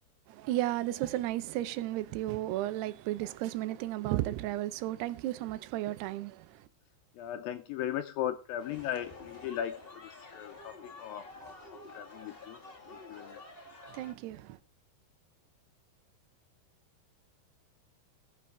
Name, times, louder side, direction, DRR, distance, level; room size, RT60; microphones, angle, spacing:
voice 1, 0.3-6.7 13.9-14.6, right 15 dB, 85° right, 2.8 m, -34 dB
voice 2, 7.2-12.6 12.9-13.4, left 11 dB, 80° left, 2.1 m, -38 dB
sound 1, 8.6-14.1, left 3 dB, 45° left, 0.7 m, -49 dB
20.5 x 7.1 x 3.3 m
omnidirectional pair, 4.6 m